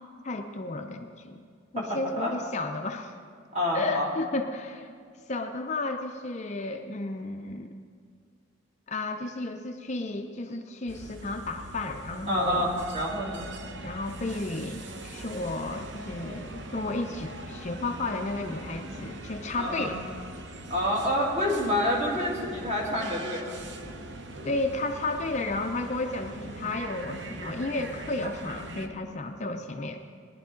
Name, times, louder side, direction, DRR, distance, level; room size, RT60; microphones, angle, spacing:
voice 1, 0.2-1.4 1.7-3.1 3.7-4.9 5.3-7.7 8.9-12.8 13.8-20.0 24.4-30.0, left 2 dB, 35° left, 5 dB, 0.5 m, -33 dB
voice 2, 1.8-2.3 3.5-4.1 12.3-13.5 19.5-19.9 20.7-23.6, left 1 dB, 30° right, -3 dB, 2.3 m, -28 dB
sound 1, 10.9-28.9, right 1 dB, 60° right, 0.8 m, -42 dB
18.5 x 11.0 x 3.8 m, 2.1 s
head